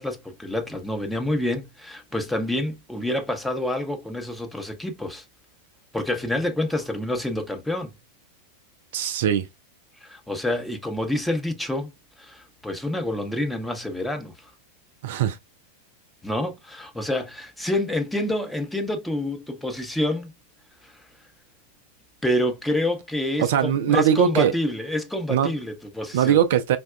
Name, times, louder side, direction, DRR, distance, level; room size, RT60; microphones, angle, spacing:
voice 1, 0.0-5.2 5.9-7.9 10.0-11.9 12.2-14.5 16.2-20.4 20.8-20.9 22.2-26.4, left 1 dB, 5° left, 0.7 m, -27 dB
voice 2, 8.9-9.5 15.0-15.4 23.4-24.5 25.3-25.5 26.1-26.8, right 9 dB, 55° right, 0.3 m, -21 dB
4.7 x 2.2 x 2.3 m
figure-of-eight pair, 90°, 0 cm